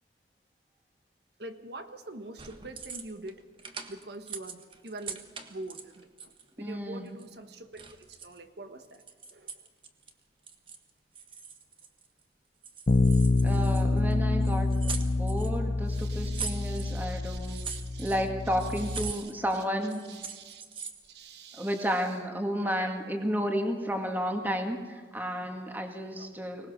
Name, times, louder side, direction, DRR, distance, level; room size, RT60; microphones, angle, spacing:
voice 1, 1.4-3.4 3.9-6.1 6.6-9.0 9.3-9.5 15.9-18.2 18.8-19.3 20.1-21.9 22.6-22.9 26.2-26.3, right 2 dB, 65° right, 8 dB, 1.5 m, -45 dB
sound 1, 2.4-3.3 3.6-6.5 7.1-8.4 8.8-10.1 10.5-10.9 11.2-12.2 12.6-14.1 14.4-15.6 16.0-17.0 17.3-18.3 18.6-19.6 19.9-21.1, right 6 dB, 30° right, 1.5 m, -42 dB
voice 2, 6.6-7.1 13.4-17.6 18.0-20.0 21.5-26.7, equal, 10° right, 3 dB, 2.0 m, -32 dB
Bass guitar, 12.9-19.1, left 2 dB, 45° left, 0.5 m, -27 dB
24.5 x 19.0 x 6.5 m, 1.5 s
head